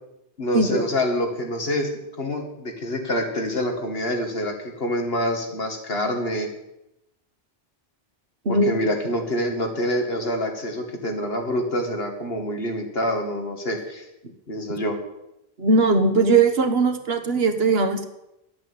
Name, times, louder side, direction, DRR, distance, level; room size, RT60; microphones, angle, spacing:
voice 1, 0.4-1.9 2.2-6.5 8.5-14.0 14.5-15.0, left 1 dB, 70° left, 3 dB, 2.4 m, -26 dB
voice 2, 8.4-8.8 15.6-18.0, right 3 dB, 70° right, 8 dB, 1.5 m, -19 dB
11.0 x 8.6 x 8.6 m, 0.87 s
omnidirectional pair, 1.1 m